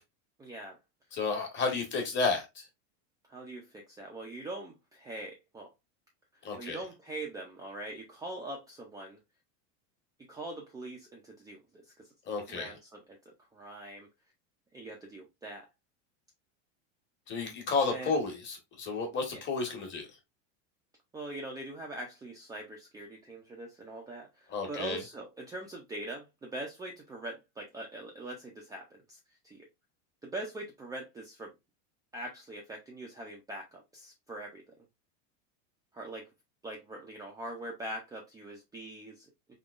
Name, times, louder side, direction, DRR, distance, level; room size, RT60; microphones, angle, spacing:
voice 1, 0.4-0.8 3.3-5.7 6.6-9.2 10.3-11.9 12.5-14.1 14.7-15.7 17.9-18.1 19.3-19.4 21.1-29.2 29.4-29.7 30.2-31.5 32.1-34.7 35.9-36.3 36.6-39.5, right 1 dB, 10° right, 0.5 m, -42 dB
voice 2, 1.1-2.6 6.4-6.8 12.3-12.7 17.3-20.1 24.5-25.0, left 4 dB, 30° left, 1.3 m, -32 dB
3.7 x 2.9 x 2.4 m
supercardioid pair, 140°, 38 cm